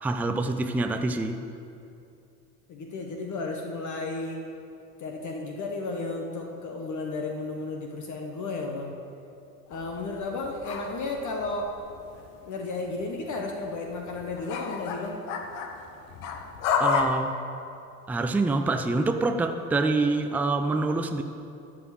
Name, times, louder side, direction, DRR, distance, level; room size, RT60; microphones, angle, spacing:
voice 1, 0.0-1.4 16.8-17.4 18.1-21.2, right 3 dB, 5° right, 6 dB, 0.4 m, -26 dB
voice 2, 2.7-4.4 5.0-8.9 9.7-11.7 12.4-15.2, left 3 dB, 40° left, 2 dB, 1.3 m, -33 dB
sound 1, 9.7-12.4 12.7-17.0, left 7 dB, 60° left, 1.3 m, -32 dB
12.5 x 5.1 x 7.6 m, 2.6 s
hypercardioid pair, 75°, 47 cm